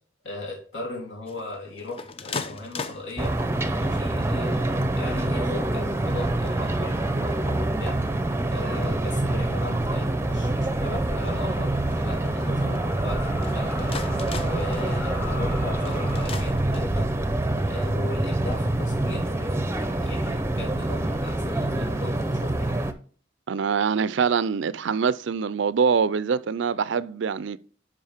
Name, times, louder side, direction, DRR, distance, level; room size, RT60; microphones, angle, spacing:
voice 1, 0.2-3.3 3.8-8.0 8.5-13.9 14.4-17.1 17.6-22.8, left 2 dB, 70° left, 3.3 m, -37 dB
sound 1, 1.3-3.8 4.4-4.9 5.4-5.5 5.7-6.3 6.7-17.2, left 4 dB, 30° left, 0.6 m, -41 dB
sound 2, 3.2-22.9, right 1 dB, 15° right, 0.6 m, -26 dB
sound 3, 6.0-16.3, left 3 dB, 10° left, 0.9 m, -43 dB
voice 2, 23.5-27.6, right 6 dB, 75° right, 0.4 m, -24 dB
11.0 x 5.1 x 3.5 m
head